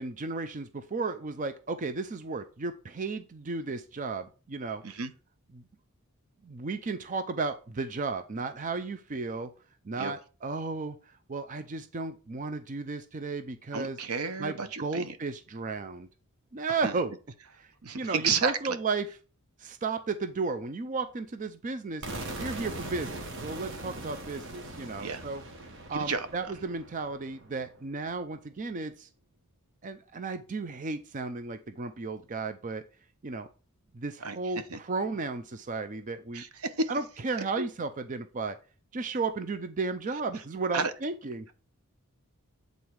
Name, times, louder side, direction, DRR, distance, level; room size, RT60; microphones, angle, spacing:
voice 1, 0.0-4.8 5.5-5.6 6.4-9.5 9.8-11.0 11.3-14.0 14.4-16.1 16.5-17.1 17.6-19.1 19.6-22.0 22.4-25.4 25.9-29.1 29.8-32.8 33.2-33.5 33.9-36.4 36.9-38.6 38.9-41.5, right 4 dB, 35° right, 0.5 m, -34 dB
voice 2, 13.7-15.2 16.8-17.0 17.8-18.8 25.0-25.2 25.9-26.3 34.2-34.4 34.7-34.8 36.3-36.9 37.6-37.7 40.7-40.9, right 4 dB, 75° right, 0.9 m, -31 dB
sound 1, 22.0-27.9, right 2 dB, 55° right, 1.4 m, -41 dB
8.7 x 4.0 x 4.6 m
head